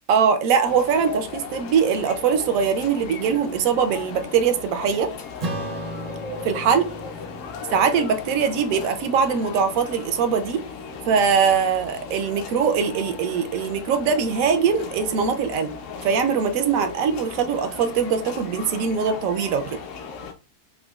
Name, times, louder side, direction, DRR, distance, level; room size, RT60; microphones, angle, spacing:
voice 1, 0.1-5.1 6.4-6.9 7.7-10.6 11.1-15.7 16.0-19.8, right 6 dB, 80° right, 1.0 m, -22 dB
sound 1, 0.6-20.3, left 5 dB, 70° left, 0.9 m, -37 dB
Acoustic guitar / Strum, 5.4-10.1, right 1 dB, 50° right, 0.5 m, -36 dB
4.8 x 2.1 x 2.3 m
omnidirectional pair, 1.4 m